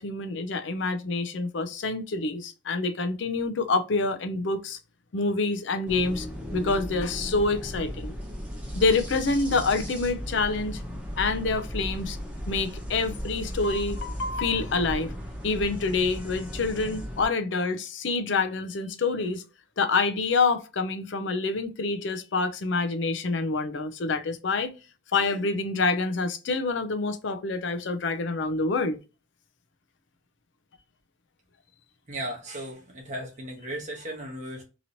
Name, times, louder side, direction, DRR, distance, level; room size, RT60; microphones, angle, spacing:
voice 1, 0.0-4.8 5.1-6.3 6.5-8.1 8.7-10.8 11.2-12.2 12.5-15.1 15.4-19.4 19.8-24.7 25.1-29.0, left 3 dB, 65° left, 0.5 m, -27 dB
sound 1, 5.9-17.3, equal, 5° right, 1.0 m, -36 dB
voice 2, 32.1-34.6, right 1 dB, 40° right, 0.9 m, -36 dB
2.9 x 2.8 x 2.6 m
head